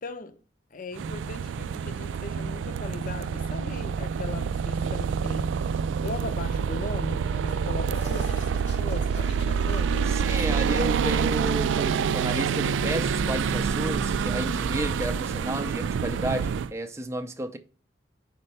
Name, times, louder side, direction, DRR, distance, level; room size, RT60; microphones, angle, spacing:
voice 1, 0.0-0.4 0.7-5.5 6.0-8.4 8.8-10.9, left 3 dB, 50° left, 0.6 m, -38 dB
sound 1, 1.0-16.7, right 6 dB, 85° right, 0.3 m, -27 dB
sound 2, 6.8-9.8, left 2 dB, 85° left, 1.9 m, -46 dB
voice 2, 10.1-17.6, right 1 dB, 15° right, 0.5 m, -32 dB
sound 3, 10.7-15.8, right 1 dB, 50° right, 0.7 m, -39 dB
5.4 x 4.4 x 5.3 m
head